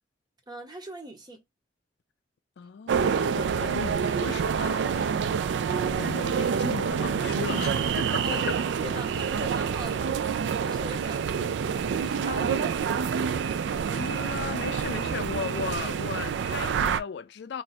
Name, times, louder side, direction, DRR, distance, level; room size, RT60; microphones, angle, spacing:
voice 1, 0.5-1.4 5.2-5.5 8.2-10.0 10.6-13.1, equal, 25° right, 0.9 m, -41 dB
voice 2, 2.6-5.1 5.9-8.6 13.8-17.6, left 6 dB, 65° left, 0.4 m, -36 dB
sound 1, 2.9-17.0, right 6 dB, 70° right, 0.3 m, -27 dB
2.5 x 2.3 x 4.0 m
head